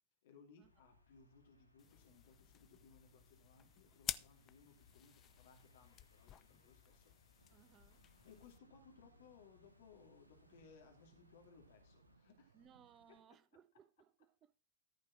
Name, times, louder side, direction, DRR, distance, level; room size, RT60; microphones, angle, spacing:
voice 1, 0.2-7.1 8.1-12.6, left 5 dB, 55° left, 2.7 m, -64 dB
sound 1, 0.6-12.2, left 4 dB, 85° left, 1.5 m, -70 dB
sound 2, 1.8-8.6, left 10 dB, 30° left, 0.6 m, -51 dB
sound 3, 7.4-13.2, right 5 dB, 75° right, 0.9 m, -72 dB
voice 2, 7.5-8.0 12.5-14.5, right 8 dB, 30° right, 0.6 m, -66 dB
14.0 x 5.1 x 6.1 m
figure-of-eight pair, 90°, 0 cm